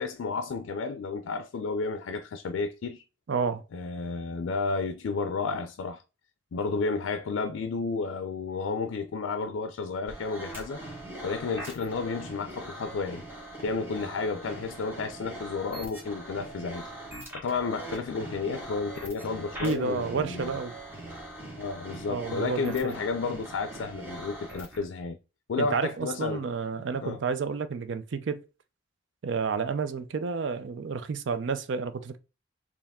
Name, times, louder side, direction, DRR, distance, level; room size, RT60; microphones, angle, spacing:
voice 1, 0.0-3.0 3.7-6.0 6.5-10.8 11.2-13.2 13.6-16.9 17.3-20.5 21.6-25.2 25.5-26.4 27.0-27.2, left 4 dB, 85° left, 0.4 m, -32 dB
voice 2, 3.3-3.6 19.6-20.7 22.1-22.9 25.6-28.4 29.2-32.2, right 5 dB, 70° right, 0.4 m, -30 dB
sound 1, 10.1-24.8, right 1 dB, 10° right, 1.4 m, -42 dB
4.6 x 2.9 x 3.5 m
head